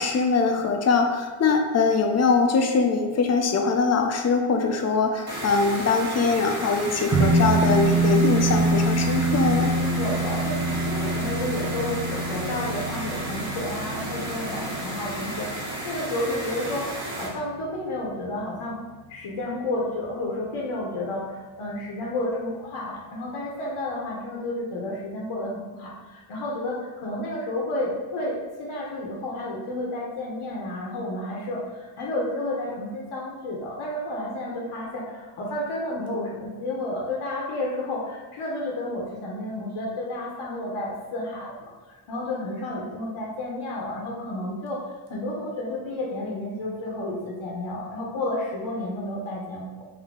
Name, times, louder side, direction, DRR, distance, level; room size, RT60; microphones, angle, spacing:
voice 1, 0.0-9.7, left 4 dB, 35° left, 3 dB, 0.5 m, -22 dB
sound 1, 5.3-17.3, right 1 dB, 45° right, 1.2 m, -33 dB
sound 2, 7.1-17.8, right 2 dB, 15° right, 0.7 m, -26 dB
voice 2, 9.6-18.8 19.1-49.7, left 1 dB, 80° left, -3 dB, 0.9 m, -31 dB
3.7 x 2.6 x 3.7 m, 1.3 s
wide cardioid pair, 125°, 50 cm